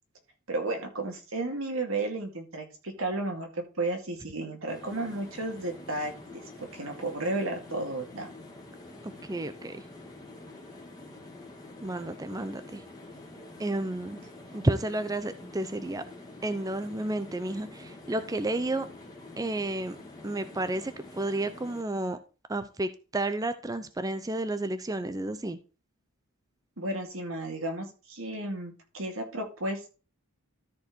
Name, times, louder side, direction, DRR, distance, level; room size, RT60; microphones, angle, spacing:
voice 1, 0.5-8.3 26.8-29.9, right 2 dB, 75° right, 3 dB, 2.3 m, -33 dB
sound 1, 4.7-21.8, left 2 dB, 20° left, 2.3 m, -47 dB
voice 2, 9.0-9.8 11.8-12.8 13.6-14.2 14.5-16.0 16.4-18.9 19.4-20.0 20.2-22.2 22.5-25.6, right 2 dB, 15° right, 11 dB, 0.5 m, -31 dB
13.0 x 4.6 x 4.5 m, 0.34 s
head